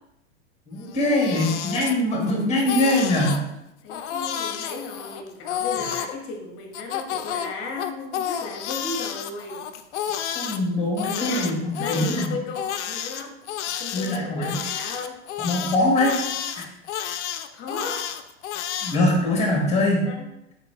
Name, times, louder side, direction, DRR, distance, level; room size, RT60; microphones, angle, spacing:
voice 1, 0.7-3.4 10.3-12.3 13.9-14.6 15.4-16.2 18.8-20.1, left 1 dB, 20° left, -1 dB, 1.5 m, -22 dB
Crying sobbing, 0.8-2.3 2.6-3.4 3.9-6.1 6.7-10.6 11.0-19.0, left 9 dB, 70° left, 0.5 m, -30 dB
voice 2, 2.1-2.9 3.8-9.7 11.1-11.5 11.8-13.3 13.7-15.2 17.5-18.1 20.0-20.3, left 3 dB, 35° left, 2 dB, 1.1 m, -35 dB
4.0 x 3.9 x 3.2 m, 0.86 s
hypercardioid pair, 115°, 36 cm